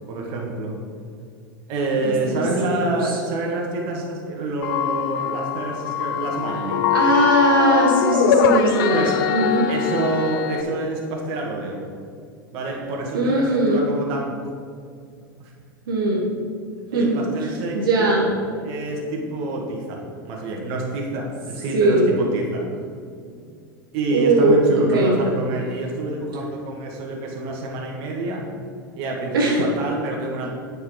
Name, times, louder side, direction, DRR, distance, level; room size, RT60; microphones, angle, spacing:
voice 1, 0.1-0.8 1.7-6.9 8.9-9.2 9.7-11.8 12.5-14.4 15.4-15.5 16.9-18.2 18.6-20.0 20.2-22.7 23.9-28.5 29.0-30.5, right 2 dB, 55° right, -1 dB, 1.7 m, -27 dB
voice 2, 2.0-3.2 6.9-9.0 9.3-9.7 13.1-13.9 15.9-16.3 16.9-18.3 19.2-19.3 21.7-22.1 23.2-23.4 24.1-24.6 24.9-25.4 29.3-29.7, right 2 dB, 80° right, -3 dB, 1.5 m, -20 dB
sound 1, 4.6-10.6, left 8 dB, 65° left, 0.6 m, -22 dB
8.3 x 5.5 x 4.8 m, 2.2 s
hypercardioid pair, 95°, 12 cm